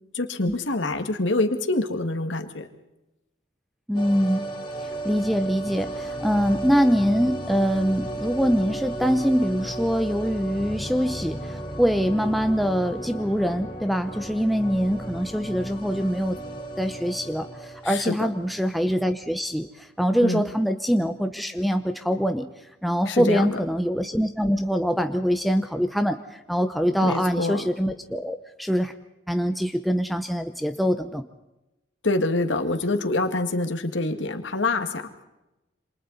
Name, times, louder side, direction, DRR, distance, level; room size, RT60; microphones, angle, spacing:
voice 1, 0.1-2.7 17.8-18.2 20.2-20.5 23.1-23.5 27.0-27.7 32.0-35.1, left 2 dB, 75° left, 6 dB, 2.0 m, -25 dB
sound 1, 3.9-18.8 19.1-19.2, right 1 dB, 25° left, 3.7 m, -34 dB
voice 2, 3.9-4.5 5.0-16.4 16.8-22.5 22.8-28.9 29.3-31.2, equal, ahead, 6 dB, 0.7 m, -24 dB
28.5 x 26.5 x 4.1 m, 0.96 s
head